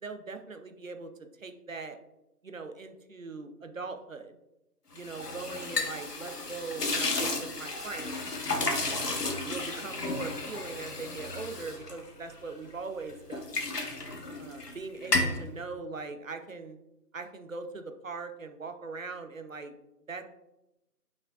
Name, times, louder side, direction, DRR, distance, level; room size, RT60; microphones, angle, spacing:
voice 1, 0.0-2.0 2.4-4.4 4.9-9.0 9.4-13.6 14.4-16.8 17.1-19.7 20.1-20.2, right 4 dB, 55° right, 7 dB, 0.8 m, -41 dB
sound 1, 4.9-12.7 13.1-14.8 15.0-15.4, left 2 dB, 70° left, 1.7 m, -33 dB
8.6 x 6.2 x 2.4 m, 0.92 s
figure-of-eight pair, 175°, 48 cm